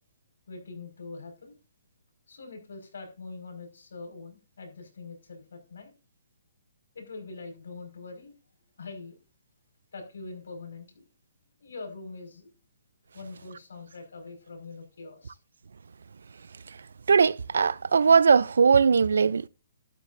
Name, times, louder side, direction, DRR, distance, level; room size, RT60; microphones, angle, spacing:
voice 1, 0.5-1.6 2.3-5.9 6.9-8.3 8.8-9.2 9.9-11.1 11.6-12.5 13.1-15.4, left 3 dB, 80° left, 5.2 m, -43 dB
voice 2, 17.1-19.5, right 5 dB, 85° right, 0.4 m, -20 dB
12.5 x 12.0 x 2.6 m
hypercardioid pair, 180°, 0 cm